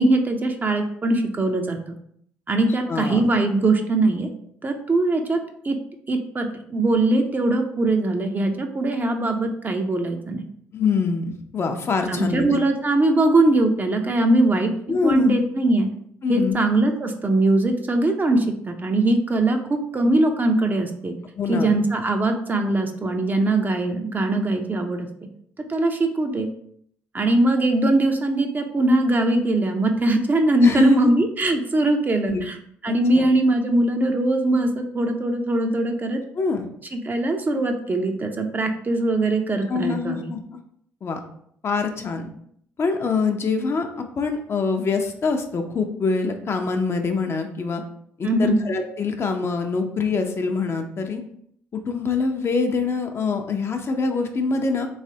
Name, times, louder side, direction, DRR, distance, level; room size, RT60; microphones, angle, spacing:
voice 1, 0.0-1.8 2.5-4.3 4.6-5.8 6.1-10.4 12.1-14.7 15.0-15.9 16.3-21.1 21.5-25.1 25.7-26.5 27.1-32.6 32.8-36.2 36.9-40.3 48.2-48.6, right 2 dB, 30° right, 5 dB, 0.5 m, -21 dB
voice 2, 2.9-3.3 10.7-12.6 14.9-15.4 16.2-16.6 21.4-21.8 30.6-31.1 32.2-32.4 32.9-33.3 36.4-36.6 39.7-40.4 41.0-41.2 41.6-42.3 42.8-47.8 48.2-51.2 51.7-54.9, left 4 dB, 45° left, 5 dB, 0.6 m, -24 dB
3.2 x 3.2 x 2.8 m, 0.67 s
hypercardioid pair, 60°, 6 cm